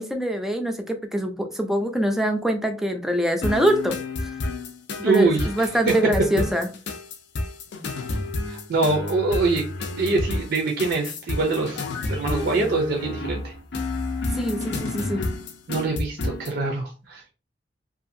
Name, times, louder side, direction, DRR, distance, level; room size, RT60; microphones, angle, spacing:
voice 1, 0.0-4.3 5.0-6.7 14.3-15.2, right 1 dB, ahead, 5 dB, 0.4 m, -24 dB
sound 1, 3.4-16.6, left 2 dB, 65° left, 0.5 m, -30 dB
voice 2, 5.0-5.9 8.5-9.6 10.0-13.5 15.7-17.3, right 3 dB, 55° right, 2 dB, 0.5 m, -24 dB
2.7 x 2.4 x 2.5 m, 0.33 s
head